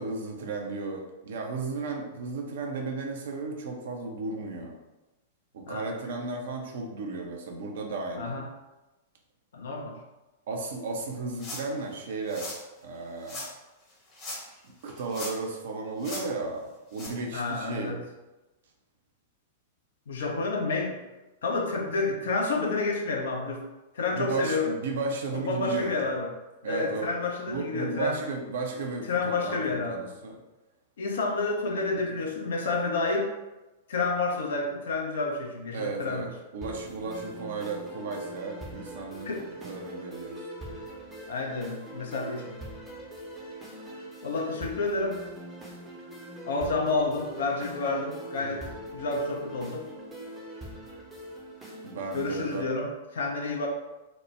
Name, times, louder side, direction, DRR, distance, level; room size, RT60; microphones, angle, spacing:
voice 1, 0.0-4.8 5.5-8.4 10.5-12.5 12.8-13.4 14.8-17.9 24.1-26.1 26.6-27.1 27.5-30.4 35.7-39.3 39.6-40.5 48.4-48.5 51.8-52.7, right 3 dB, 55° right, 1 dB, 0.5 m, -34 dB
voice 2, 8.2-8.5 9.5-10.0 17.3-18.0 20.1-21.0 21.4-23.6 23.9-24.7 25.3-26.3 26.6-28.2 29.1-30.1 31.0-33.3 33.9-36.3 39.3-39.4 41.3-42.6 44.2-45.2 46.5-49.9 52.1-53.7, left 3 dB, 60° left, 1 dB, 0.5 m, -29 dB
sound 1, 11.4-11.8 12.3-12.6 13.2-13.5 14.1-14.6 14.9-15.5 16.0-16.2 16.9-17.1, left 1 dB, 30° left, 1.0 m, -38 dB
sound 2, 36.6-52.6, right 1 dB, 15° right, 0.6 m, -42 dB
3.0 x 2.1 x 3.1 m, 1.1 s
figure-of-eight pair, 100°, 0 cm